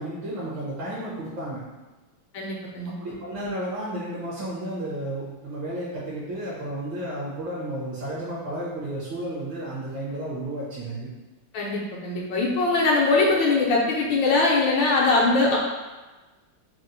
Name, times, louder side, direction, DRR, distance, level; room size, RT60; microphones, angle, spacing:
voice 1, 0.0-1.6 3.0-11.1, right 1 dB, 70° right, -8 dB, 1.6 m, -32 dB
voice 2, 2.3-3.0 11.5-15.6, left 3 dB, 75° left, -2 dB, 1.3 m, -22 dB
4.2 x 2.0 x 3.8 m, 1.2 s
omnidirectional pair, 2.2 m